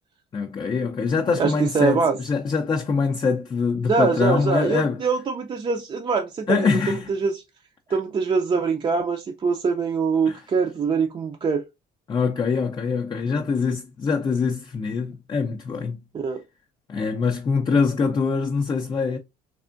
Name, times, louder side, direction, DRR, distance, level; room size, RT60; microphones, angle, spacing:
voice 1, 0.3-5.0 6.5-7.1 10.3-10.4 12.1-16.0 16.9-19.2, left 5 dB, 25° left, 0.4 m, -24 dB
voice 2, 1.4-2.2 3.9-6.7 7.2-7.4 7.9-11.6 16.1-16.4, right 5 dB, 30° right, 0.5 m, -23 dB
3.5 x 3.4 x 2.4 m
cardioid pair, 145°, 17 cm